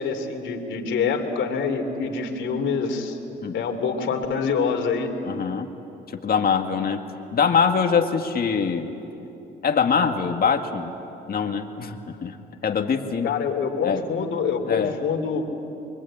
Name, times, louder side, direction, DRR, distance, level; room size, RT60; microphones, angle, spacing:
voice 1, 0.0-3.2 3.5-5.1 13.2-15.5, left 5 dB, 70° left, 3 dB, 3.0 m, -26 dB
voice 2, 5.3-5.7 6.2-7.0 7.3-8.9 9.6-10.9 11.3-12.4 12.6-13.3 13.8-14.0 14.7-14.9, left 6 dB, 50° left, 4 dB, 2.0 m, -23 dB
24.0 x 23.0 x 8.7 m, 3.0 s
cardioid pair, 90°, 20 cm